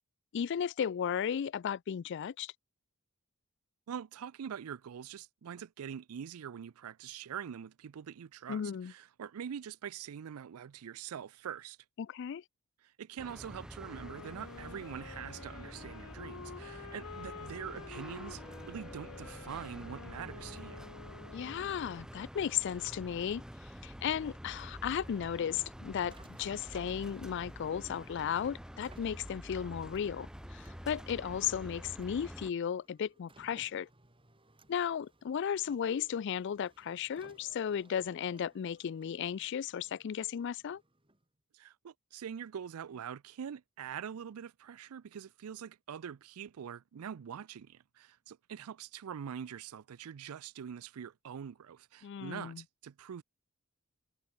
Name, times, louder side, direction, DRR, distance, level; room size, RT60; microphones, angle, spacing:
voice 1, 0.3-2.5 8.5-8.9 12.0-12.4 21.3-23.4 23.8-33.9 34.7-40.8 52.0-52.6, left 8 dB, 55° left, 0.3 m, -35 dB
voice 2, 3.9-11.8 12.8-20.8 41.5-53.2, right 8 dB, 80° right, 0.4 m, -44 dB
sound 1, 13.2-32.5, equal, 5° right, 1.9 m, -48 dB
Wind instrument woodwind instrument, 13.8-22.1, left 5 dB, 80° left, 0.9 m, -49 dB
Car, 26.0-41.4, right 2 dB, 25° right, 3.8 m, -64 dB
head